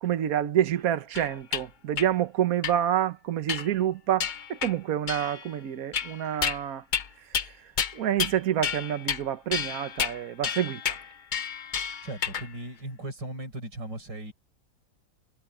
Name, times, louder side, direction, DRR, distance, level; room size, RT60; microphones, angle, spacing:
voice 1, 0.0-6.8 7.9-10.8, right 10 dB, 60° right, 1.4 m, -27 dB
sound 1, 1.2-1.6 2.0-2.1 2.6-2.8 3.5-3.8 4.2-4.7 5.1-5.5 5.9-6.6 6.9-7.1 7.3-7.5 7.8-8.4 8.6-9.2 9.5-12.5, left 7 dB, 80° left, 0.4 m, -31 dB
voice 2, 11.8-14.3, right 1 dB, 85° right, 7.3 m, -38 dB
omnidirectional pair, 1.9 m